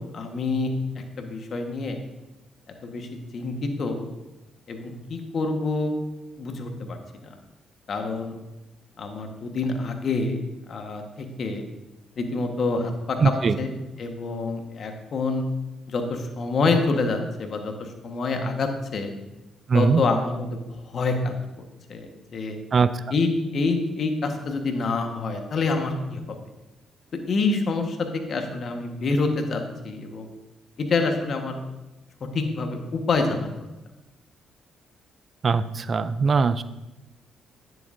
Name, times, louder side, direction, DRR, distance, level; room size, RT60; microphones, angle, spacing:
voice 1, 0.1-2.0 2.8-3.1 3.3-4.0 4.7-5.9 6.4-7.0 7.9-8.3 9.0-10.4 10.7-11.6 12.2-13.2 13.6-13.7 14.0-15.5 15.9-17.7 18.0-19.1 19.7-20.5 20.9-21.3 21.9-22.6 23.1-26.2 27.3-30.3 30.8-31.6 32.3-33.5, left 3 dB, 55° left, 4 dB, 1.3 m, -26 dB
voice 2, 13.2-13.6 19.7-20.0 22.7-23.0 35.4-36.6, right 5 dB, 50° right, 14 dB, 0.4 m, -21 dB
9.8 x 7.8 x 2.6 m, 1.0 s
hypercardioid pair, 50°, 0 cm